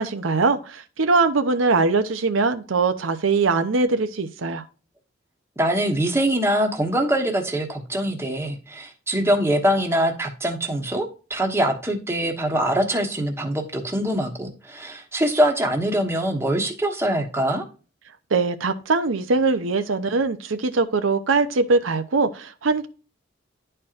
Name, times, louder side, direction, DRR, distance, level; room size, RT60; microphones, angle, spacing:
voice 1, 0.0-4.6 18.3-22.9, right 4 dB, 85° right, 0.7 m, -22 dB
voice 2, 5.6-17.6, right 1 dB, 15° right, 1.2 m, -23 dB
11.0 x 4.4 x 2.5 m
head